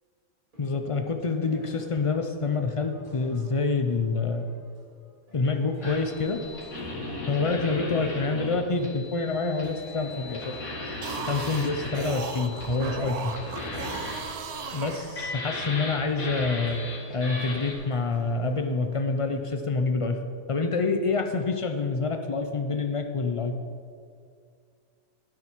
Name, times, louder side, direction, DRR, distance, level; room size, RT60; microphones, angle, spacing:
sound 1, 0.5-7.9 9.2-12.1 12.5-19.0, equal, 35° right, 2.7 m, -49 dB
voice 1, 0.6-4.4 5.3-6.4 7.3-10.5 11.2-13.3 14.7-16.8 17.1-20.2 20.5-23.5, left 4 dB, 55° left, 6 dB, 0.3 m, -27 dB
sound 2, 5.8-17.7, left 2 dB, 70° left, 2.7 m, -37 dB
sound 3, 10.9-15.6, right 6 dB, 90° right, 1.3 m, -37 dB
11.5 x 9.8 x 4.5 m, 2.2 s
omnidirectional pair, 1.5 m